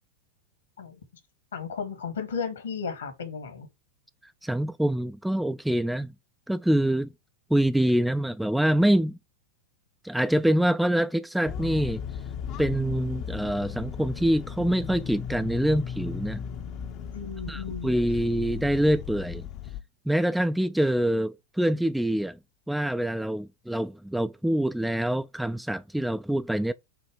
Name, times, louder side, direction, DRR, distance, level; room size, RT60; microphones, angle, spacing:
voice 1, 1.5-3.7 17.1-17.9, left 6 dB, 70° left, 1.6 m, -34 dB
voice 2, 4.4-6.1 6.5-7.1 7.5-9.2 10.0-12.0 12.6-16.4 17.5-19.5 20.1-22.4 22.7-26.7, right 1 dB, ahead, 0.3 m, -25 dB
sound 1, 11.5-19.8, left 8 dB, 40° left, 0.7 m, -36 dB
7.0 x 2.9 x 4.9 m
figure-of-eight pair, 90°, 0 cm